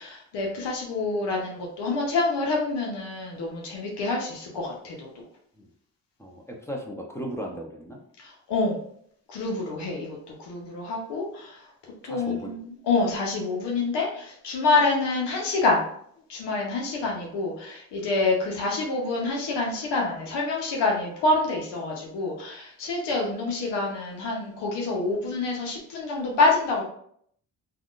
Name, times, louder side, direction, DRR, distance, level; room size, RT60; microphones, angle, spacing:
voice 1, 0.0-5.1 8.2-8.8 9.3-11.6 12.0-12.6 12.8-15.9 16.3-26.8, left 3 dB, 80° left, -1 dB, 0.8 m, -27 dB
voice 2, 6.2-8.0 12.0-12.5 17.0-17.2, equal, 5° left, 0 dB, 0.8 m, -36 dB
3.5 x 2.4 x 2.4 m, 0.65 s
supercardioid pair, 60°, 41 cm